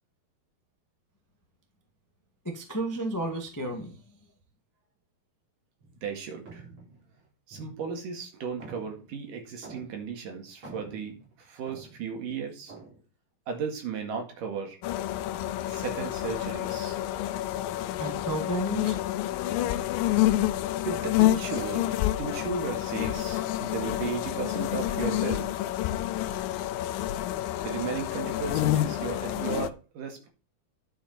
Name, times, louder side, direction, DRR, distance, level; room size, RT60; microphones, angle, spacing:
voice 1, 2.4-4.0 18.0-19.0, right 1 dB, 25° left, 0.4 m, -32 dB
sound 1, 5.8-6.1 6.4-8.2 8.6-10.2 10.5-12.2 12.7-13.0, right 3 dB, 35° right, 4.4 m, -48 dB
voice 2, 6.0-6.6 7.5-12.7 13.5-14.8 15.7-17.0 20.9-21.9 22.2-25.5 27.6-30.3, right 6 dB, 65° right, 3.3 m, -35 dB
sound 2, 14.8-29.7, left 14 dB, 80° left, 2.3 m, -28 dB
10.5 x 6.9 x 4.4 m
omnidirectional pair, 4.4 m